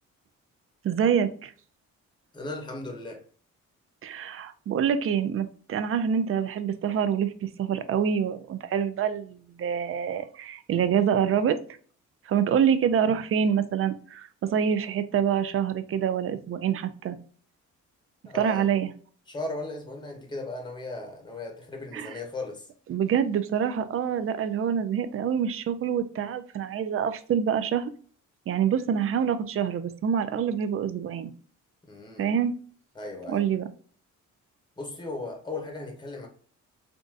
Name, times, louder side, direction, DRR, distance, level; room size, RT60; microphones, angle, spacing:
voice 1, 0.8-1.5 4.0-11.6 12.3-17.2 18.3-18.9 21.9-22.1 22.9-27.9 28.5-31.3 32.2-32.5 33.3-33.7, right 8 dB, 45° right, 0.5 m, -26 dB
voice 2, 2.3-3.2 18.2-18.7 19.3-22.7 31.8-32.3 32.9-33.4 34.8-36.3, left 2 dB, 15° left, 1.0 m, -36 dB
3.5 x 2.6 x 2.5 m
cardioid pair, 90°, 30 cm